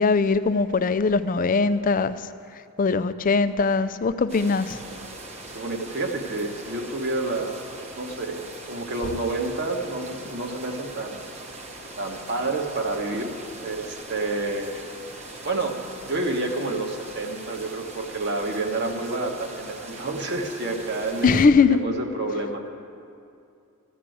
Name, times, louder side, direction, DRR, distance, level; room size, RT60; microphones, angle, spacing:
voice 1, 0.0-2.3 2.8-4.8 21.2-21.8, left 4 dB, 40° left, 12 dB, 0.4 m, -21 dB
sound 1, 4.3-21.5, right 2 dB, 30° right, 0.9 m, -41 dB
voice 2, 5.5-7.6 8.0-8.4 8.7-11.3 12.0-13.3 13.6-14.7 15.4-15.8 16.0-21.3 21.7-22.6, right 2 dB, 50° right, 2 dB, 1.3 m, -29 dB
13.5 x 7.6 x 9.2 m, 2.5 s
head